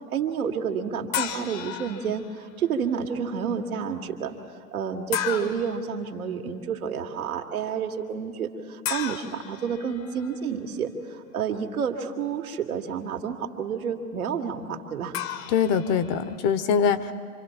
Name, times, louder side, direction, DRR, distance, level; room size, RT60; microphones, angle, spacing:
voice 1, 0.1-4.4 4.7-15.2, right 7 dB, 70° right, 3 dB, 2.1 m, -30 dB
sound 1, 1.1-2.4 5.1-5.8 8.8-10.4 15.1-16.3, left 10 dB, 60° left, 1.4 m, -33 dB
voice 2, 15.5-17.1, left 7 dB, 35° left, 13 dB, 1.1 m, -23 dB
26.5 x 26.0 x 4.4 m, 2.3 s
figure-of-eight pair, 100°, 45 cm